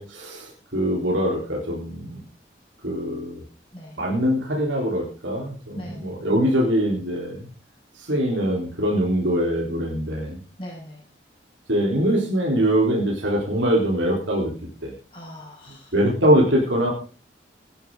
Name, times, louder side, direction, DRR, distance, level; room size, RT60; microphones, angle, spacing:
voice 1, 0.0-2.2 2.8-3.4 4.0-7.4 8.1-10.4 11.7-14.5 14.8-14.9 15.9-16.9, equal, 90° right, -2 dB, 4.0 m, -23 dB
voice 2, 5.8-6.1 10.6-11.0 15.1-16.0, equal, 30° left, -3 dB, 5.6 m, -39 dB
17.0 x 11.0 x 3.9 m, 0.36 s
head